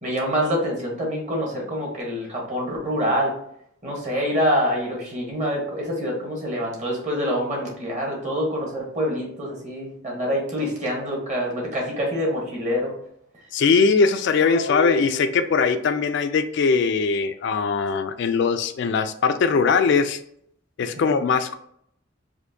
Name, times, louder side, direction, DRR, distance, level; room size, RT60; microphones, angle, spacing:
voice 1, 0.0-3.3 3.8-12.9 21.0-21.1, equal, 40° right, -2 dB, 1.4 m, -26 dB
voice 2, 13.5-20.2 20.8-21.5, left 5 dB, 60° left, 9 dB, 0.3 m, -21 dB
4.3 x 2.6 x 2.6 m, 0.70 s
head